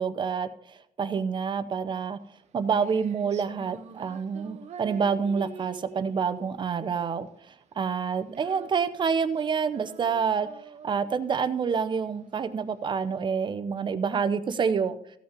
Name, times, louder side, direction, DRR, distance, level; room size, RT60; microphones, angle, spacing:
voice 1, 0.0-2.2 2.5-10.5 10.8-15.0, right 6 dB, 40° right, 11 dB, 0.7 m, -28 dB
Female singing, 2.2-13.2, right 7 dB, 60° right, 1.0 m, -46 dB
15.5 x 5.3 x 5.2 m, 0.68 s
cardioid pair, 140°, 13 cm